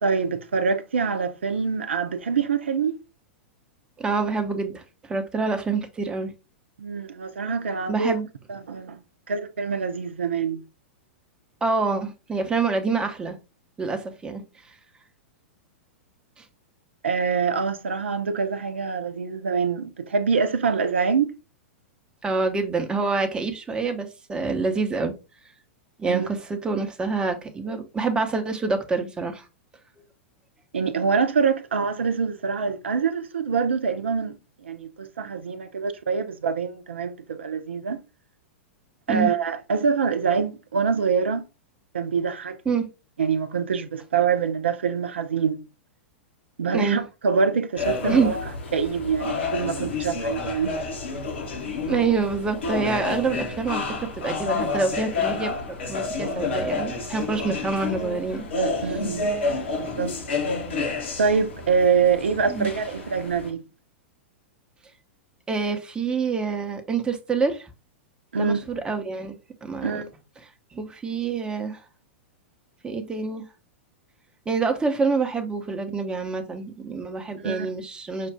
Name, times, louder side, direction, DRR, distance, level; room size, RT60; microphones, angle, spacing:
voice 1, 0.0-2.9 6.8-8.2 8.5-9.0 9.3-10.6 17.0-21.3 26.1-26.3 30.7-34.4 34.6-38.0 39.1-41.4 41.9-42.6 43.2-45.6 46.6-48.4 48.7-50.8 58.8-59.3 59.8-60.1 61.2-63.6 68.3-68.6 69.8-70.1 77.4-77.7, right 5 dB, 70° right, 0.7 m, -25 dB
voice 2, 4.0-6.3 7.9-8.3 11.6-13.4 13.8-14.8 16.4-16.5 22.2-25.1 26.0-29.5 39.1-39.3 42.6-42.9 46.7-47.0 48.1-48.3 51.9-58.4 58.8-59.0 62.5-62.7 65.5-67.7 68.4-69.4 69.6-70.0 70.4-71.8 72.8-73.5 74.5-78.3, right 4 dB, 15° right, 0.8 m, -26 dB
sound 1, 47.8-63.5, left 3 dB, 65° left, 1.3 m, -29 dB
5.8 x 2.5 x 3.3 m
figure-of-eight pair, 100°, 7 cm